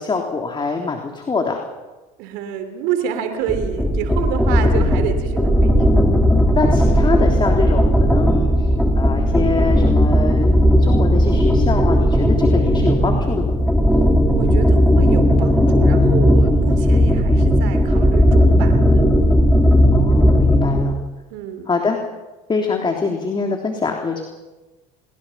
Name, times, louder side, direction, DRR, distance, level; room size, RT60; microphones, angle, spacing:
voice 1, 0.0-1.6 6.5-8.7 9.0-10.5 10.8-13.5 19.9-21.0 21.7-22.0 22.5-24.2, left 4 dB, 25° left, 2 dB, 3.4 m, -24 dB
voice 2, 2.2-5.9 14.2-19.1 21.3-21.7, right 8 dB, 75° right, 8 dB, 3.2 m, -28 dB
sound 1, 3.5-20.9, equal, 5° left, 3.1 m, -15 dB
30.0 x 21.5 x 5.8 m, 1.1 s
supercardioid pair, 85°, 19 cm